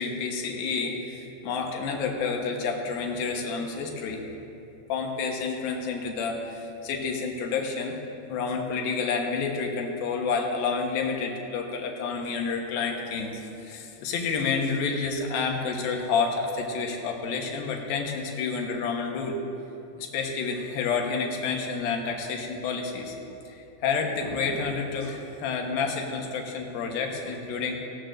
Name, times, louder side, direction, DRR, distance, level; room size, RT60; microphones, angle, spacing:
voice 1, 0.0-4.2 4.9-8.0 8.3-19.4 20.0-23.2 23.5-27.9, left 5 dB, 80° left, 1 dB, 3.0 m, -29 dB
18.0 x 16.5 x 2.6 m, 2.9 s
omnidirectional pair, 4.2 m